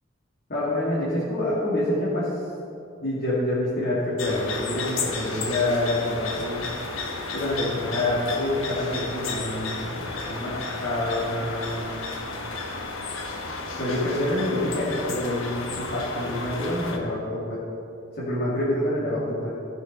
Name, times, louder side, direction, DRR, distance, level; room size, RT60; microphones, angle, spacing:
voice 1, 0.5-2.3 3.0-6.7 7.3-9.9 10.3-12.1 13.8-17.6 18.2-19.5, left 1 dB, 50° left, -9 dB, 2.4 m, -27 dB
sound 1, 4.2-17.0, left 3 dB, 80° left, 1.2 m, -33 dB
15.0 x 6.3 x 5.4 m, 2.6 s
head